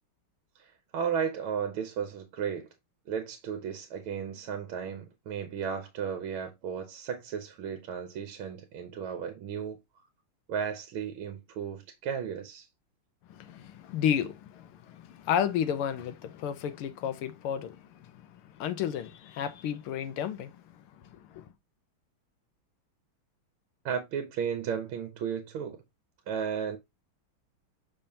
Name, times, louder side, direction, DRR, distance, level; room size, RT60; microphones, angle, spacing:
voice 1, 0.5-2.7 3.1-9.8 10.5-12.7 23.8-25.8 26.3-26.8, right 7 dB, 75° right, 1.7 m, -34 dB
voice 2, 13.3-21.5, left 9 dB, 80° left, 1.7 m, -33 dB
6.8 x 5.5 x 2.8 m
omnidirectional pair, 2.4 m